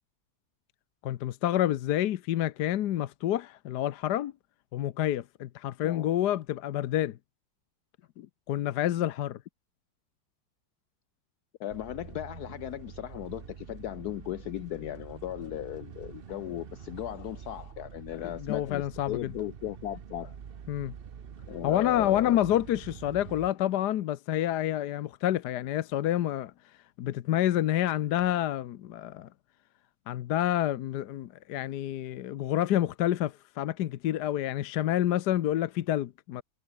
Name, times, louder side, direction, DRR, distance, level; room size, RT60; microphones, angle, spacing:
voice 1, 1.0-4.3 4.7-7.2 8.5-9.4 18.2-19.2 20.7-20.9 21.6-26.5 27.0-29.3 30.1-36.4, left 12 dB, 65° left, 1.1 m, -28 dB
voice 2, 11.6-20.4 21.5-22.4, left 13 dB, 90° left, 0.8 m, -37 dB
sound 1, 11.7-23.5, right 7 dB, 85° right, 0.5 m, -46 dB
omnidirectional pair, 2.3 m